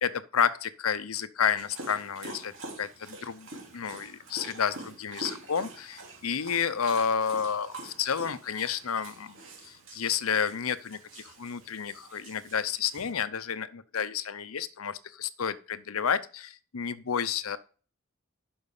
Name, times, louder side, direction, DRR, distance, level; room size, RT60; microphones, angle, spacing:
voice 1, 0.0-2.5 2.8-3.5 3.7-9.4 9.6-17.6, left 7 dB, 80° left, 0.7 m, -30 dB
Dog, 1.6-13.1, right 2 dB, 65° right, 3.1 m, -46 dB
10.5 x 6.1 x 5.4 m
head